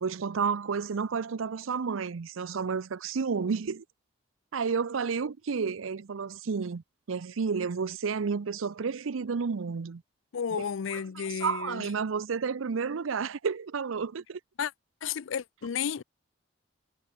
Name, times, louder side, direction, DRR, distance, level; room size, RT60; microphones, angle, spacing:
voice 1, 0.0-3.8 4.5-10.0 11.2-14.4, right 5 dB, 85° right, 0.6 m, -31 dB
voice 2, 10.3-11.9 14.6-14.7 15.0-16.0, left 7 dB, 80° left, 0.4 m, -32 dB
head